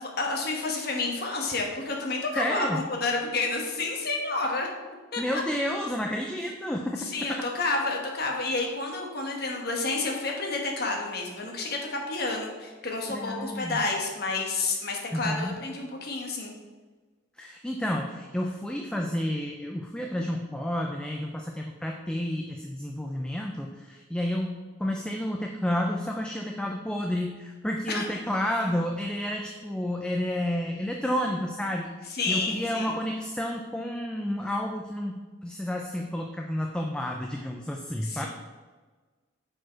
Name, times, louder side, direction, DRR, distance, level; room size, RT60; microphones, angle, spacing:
voice 1, 0.0-4.7 5.1-5.4 7.0-16.5 27.9-28.1 32.1-32.9 38.0-38.3, left 3 dB, 50° left, 1 dB, 1.1 m, -30 dB
voice 2, 2.3-2.8 5.2-7.5 13.1-13.8 15.1-15.6 17.4-38.3, left 1 dB, 5° left, 1 dB, 0.3 m, -30 dB
6.4 x 4.8 x 4.5 m, 1.3 s
head